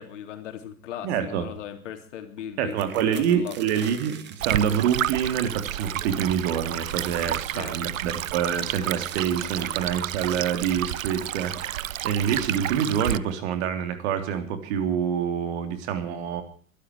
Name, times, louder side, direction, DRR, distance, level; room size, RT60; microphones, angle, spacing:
voice 1, 0.0-3.6 7.3-7.7, left 9 dB, 60° left, 7 dB, 3.4 m, -38 dB
voice 2, 1.0-1.5 2.6-16.4, right 8 dB, 50° right, 8 dB, 3.7 m, -26 dB
sound 1, 2.7-6.0 6.3-6.6 6.8-7.4 7.9-10.6 11.4-11.9 12.6-12.7 13.0-13.3, right 9 dB, 25° right, 1.9 m, -46 dB
Stream, 4.4-13.2, right 12 dB, 70° right, 0.7 m, -31 dB
24.0 x 12.0 x 4.8 m, 0.43 s
figure-of-eight pair, 95°, 41 cm